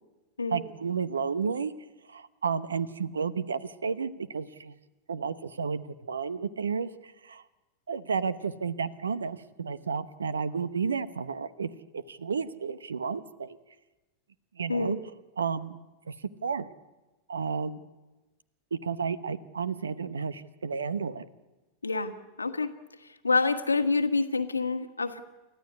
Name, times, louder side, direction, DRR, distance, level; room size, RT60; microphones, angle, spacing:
voice 1, 0.5-1.7 2.1-4.7 5.1-7.4 7.9-13.6 14.5-15.0 15.4-15.8 16.1-16.7 17.3-17.9 18.7-21.3, right 5 dB, 70° right, 17 dB, 0.9 m, -32 dB
voice 2, 21.8-22.1 22.4-22.7 23.2-25.2, left 3 dB, 80° left, 9 dB, 1.4 m, -27 dB
29.0 x 14.0 x 9.7 m, 1.1 s
figure-of-eight pair, 90°, 0 cm